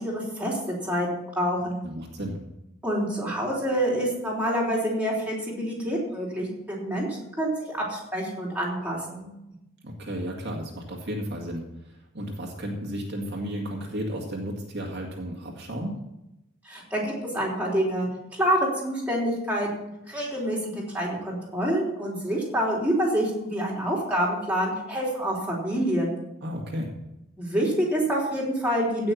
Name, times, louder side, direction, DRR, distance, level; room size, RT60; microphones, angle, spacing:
voice 1, 0.0-1.8 2.8-9.3 16.6-18.1 18.4-26.2 27.4-29.1, equal, 5° right, -3 dB, 3.5 m, -27 dB
voice 2, 1.8-2.4 9.8-16.0 26.4-26.9, equal, 50° right, 0 dB, 2.1 m, -33 dB
16.5 x 6.2 x 7.5 m, 0.91 s
head